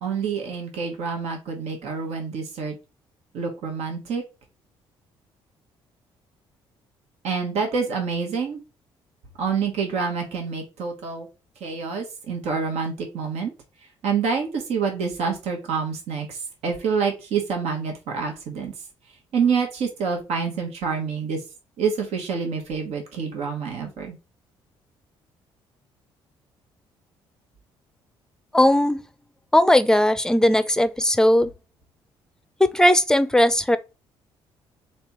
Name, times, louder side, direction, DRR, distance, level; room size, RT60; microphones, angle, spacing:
voice 1, 0.0-2.7 3.3-4.2 7.2-8.6 9.4-11.3 11.6-13.5 14.0-18.7 19.3-21.4 21.8-24.2, right 5 dB, 75° right, 1.2 m, -27 dB
voice 2, 28.5-29.0 29.5-31.5 32.6-33.8, left 1 dB, 5° left, 0.5 m, -18 dB
3.3 x 2.9 x 4.5 m
supercardioid pair, 60°, 11 cm